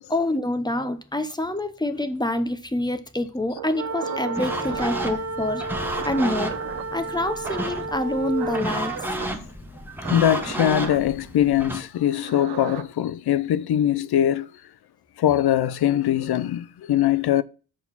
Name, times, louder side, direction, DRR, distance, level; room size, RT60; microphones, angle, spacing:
voice 1, 0.1-5.6 6.0-6.6 6.9-8.9, left 1 dB, 10° left, 0.7 m, -26 dB
sound 1, 3.6-5.3 6.0-6.8 7.4-7.9 8.4-9.3 10.0-11.0 12.1-12.8, right 8 dB, 75° right, 0.9 m, -35 dB
sound 2, 3.7-8.7, right 2 dB, 45° right, 0.6 m, -32 dB
sound 3, 4.4-11.8, right 1 dB, 5° right, 1.0 m, -32 dB
voice 2, 10.1-14.5 15.2-17.4, left 11 dB, 70° left, 0.6 m, -22 dB
6.3 x 4.6 x 5.4 m
cardioid pair, 95°, 40 cm